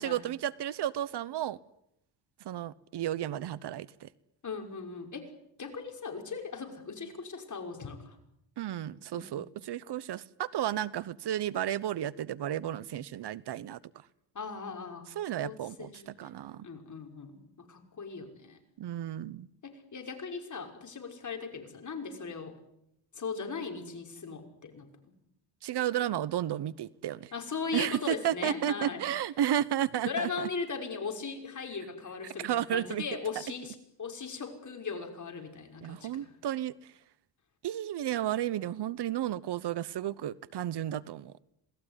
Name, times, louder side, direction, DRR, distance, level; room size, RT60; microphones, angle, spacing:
voice 1, 0.0-1.6 2.4-4.1 8.6-13.8 15.1-16.7 18.8-19.5 25.6-27.3 27.7-30.5 32.2-33.0 35.8-36.7 37.6-41.4, right 11 dB, 65° right, 1.0 m, -33 dB
voice 2, 4.4-5.3 5.6-8.2 9.1-9.4 14.3-15.1 15.4-16.3 16.6-18.6 19.6-22.5 23.1-25.1 27.3-29.0 30.0-36.3, left 5 dB, 40° left, 5.8 m, -39 dB
27.0 x 19.5 x 9.9 m
cardioid pair, 95°, 43 cm